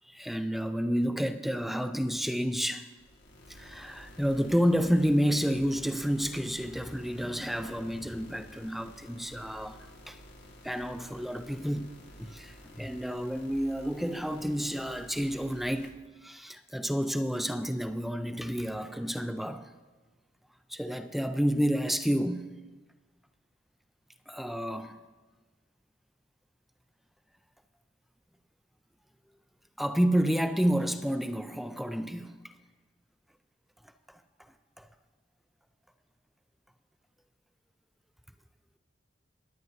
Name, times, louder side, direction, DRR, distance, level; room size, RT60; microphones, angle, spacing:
voice 1, 0.0-2.9 3.5-10.2 10.6-11.9 12.2-19.7 20.7-22.5 24.3-25.0 29.8-32.5 34.1-34.2 34.8-34.9, equal, ahead, 0.4 m, -30 dB
sound 1, 3.0-15.9, equal, 65° left, 1.7 m, -52 dB
21.5 x 9.5 x 2.7 m
head